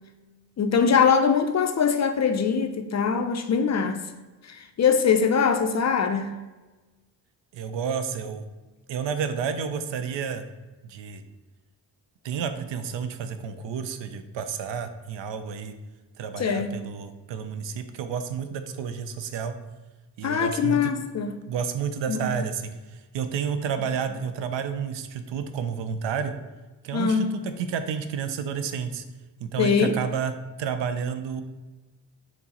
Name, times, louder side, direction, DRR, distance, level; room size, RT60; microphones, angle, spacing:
voice 1, 0.6-4.0 4.5-6.3 16.4-16.7 20.2-21.3 22.1-22.3 26.9-27.3 29.6-30.0, left 6 dB, 40° left, 0.4 m, -22 dB
voice 2, 7.5-8.5 8.9-10.4 10.8-11.2 12.2-15.7 16.2-19.5 20.2-20.9 21.5-26.3 26.8-29.0 29.4-30.3 30.6-31.4, right 7 dB, 75° right, 0.5 m, -30 dB
4.5 x 2.0 x 4.1 m
cardioid pair, 55°, 45 cm